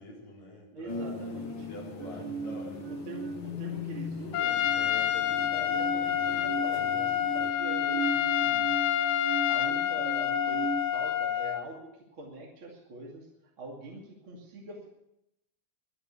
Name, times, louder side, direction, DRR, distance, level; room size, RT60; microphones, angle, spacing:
voice 1, 0.0-1.1 1.6-2.8, left 1 dB, 85° left, -3 dB, 6.1 m, -46 dB
voice 2, 0.7-1.7 2.2-2.3 2.9-8.9 9.4-13.3 13.6-14.9, right 2 dB, 40° right, -2 dB, 3.2 m, -44 dB
sound 1, 0.9-7.5, left 5 dB, 45° left, 1.7 m, -41 dB
sound 2, 2.0-4.1 4.4-10.8, right 4 dB, 90° right, 2.5 m, -37 dB
Trumpet, 4.3-11.7, left 11 dB, 65° left, 1.8 m, -28 dB
23.5 x 8.4 x 7.0 m, 0.83 s
omnidirectional pair, 3.8 m